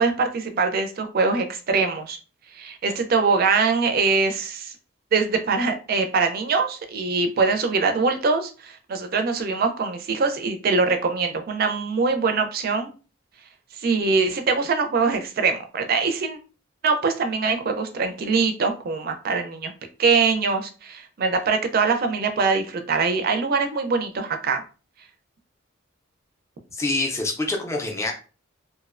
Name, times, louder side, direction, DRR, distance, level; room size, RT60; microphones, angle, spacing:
voice 1, 0.0-2.2 2.6-4.7 5.1-12.9 13.8-16.4 16.8-19.7 20.0-24.6, right 4 dB, 50° right, 7 dB, 0.4 m, -23 dB
voice 2, 26.7-28.1, left 2 dB, 15° left, 3 dB, 0.4 m, -26 dB
2.5 x 2.0 x 2.4 m, 0.35 s
head